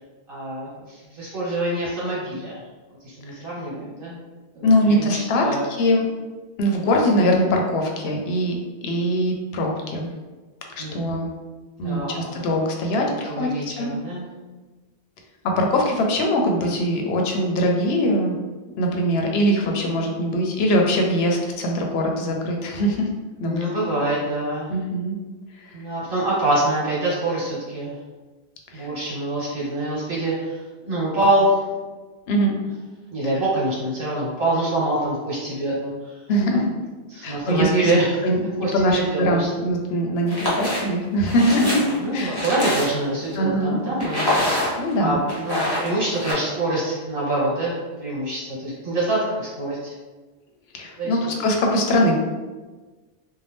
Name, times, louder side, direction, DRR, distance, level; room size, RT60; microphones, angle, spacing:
voice 1, 0.3-2.5 3.0-4.2 4.5-5.6 10.8-11.0 11.8-12.5 13.0-14.3 23.4-24.7 25.7-27.9 28.7-31.7 33.1-36.2 36.5-36.6 37.1-38.2 38.6-39.5 41.6-41.7 42.0-44.3 45.0-49.9 51.0-51.3, right 1 dB, 55° right, -7 dB, 1.3 m, -25 dB
voice 2, 4.6-6.0 6.6-8.6 8.8-10.1 10.7-11.3 11.8-13.9 15.4-18.3 18.8-23.1 23.4-23.9 24.7-25.2 25.6-25.8 28.7-28.9 32.3-32.5 33.2-33.3 36.3-36.7 37.2-37.9 38.2-41.8 42.1-42.4 43.4-43.8 44.8-45.2 50.7-52.2, equal, 70° left, 1 dB, 0.8 m, -22 dB
sound 1, 40.2-40.8 41.3-43.1 44.0-44.9 45.3-46.3, left 1 dB, 25° left, 0.7 m, -25 dB
2.6 x 2.1 x 3.3 m, 1.3 s
omnidirectional pair, 1.1 m